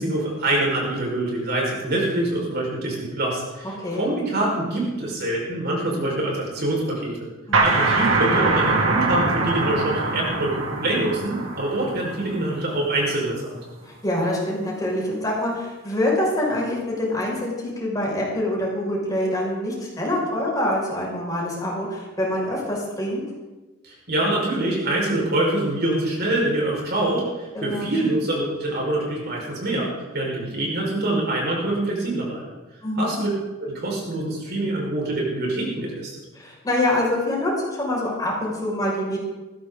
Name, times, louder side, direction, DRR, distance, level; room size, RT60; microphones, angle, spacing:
voice 1, 0.0-7.3 7.6-13.5 23.8-29.9 30.1-32.4 33.0-33.3 33.6-36.1, right 1 dB, 55° right, -2 dB, 5.4 m, -25 dB
sound 1, 7.5-12.9, right 3 dB, 90° right, 2.5 m, -23 dB
voice 2, 13.8-23.2 27.5-27.9 32.8-33.1 36.4-39.2, left 1 dB, 20° left, -4 dB, 6.1 m, -25 dB
19.5 x 15.5 x 4.0 m, 1.1 s
head